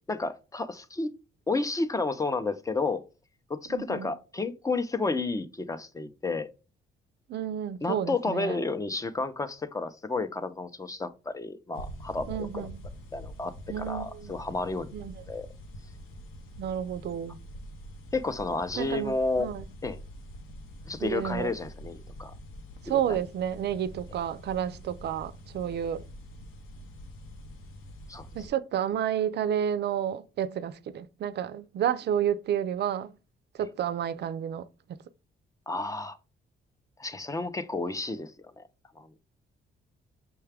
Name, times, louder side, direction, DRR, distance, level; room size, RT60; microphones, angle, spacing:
voice 1, 0.1-1.1 1.5-3.0 3.5-6.5 7.8-12.7 13.1-14.9 15.3-15.5 18.1-19.5 19.8-20.0 20.9-22.3 22.9-23.2 28.1-28.3 35.7-36.2 37.0-38.3 38.6-38.7 39.0-39.1, left 3 dB, 15° left, 0.6 m, -31 dB
voice 2, 3.7-4.1 7.3-8.6 12.3-12.8 13.7-14.3 14.9-15.2 16.6-17.4 18.8-19.1 19.4-19.6 21.0-21.5 22.8-26.0 28.3-33.1 33.5-35.0, right 9 dB, 60° right, 0.5 m, -31 dB
sound 1, 11.7-28.5, equal, 80° left, 0.8 m, -45 dB
5.7 x 2.3 x 3.3 m
cardioid pair, 90°, 20 cm